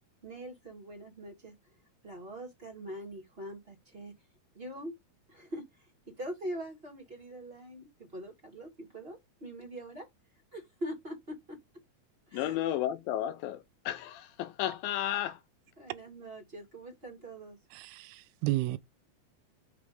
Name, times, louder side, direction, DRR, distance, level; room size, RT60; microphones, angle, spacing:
voice 1, 0.2-1.5 2.0-4.1 4.5-4.9 5.3-10.1 10.5-11.6 12.3-12.6 15.8-17.6, right 1 dB, 20° right, 1.7 m, -43 dB
voice 2, 12.3-15.4, left 12 dB, 80° left, 2.3 m, -33 dB
voice 3, 17.8-18.8, right 18 dB, 90° right, 2.5 m, -32 dB
6.0 x 3.1 x 5.1 m
omnidirectional pair, 4.4 m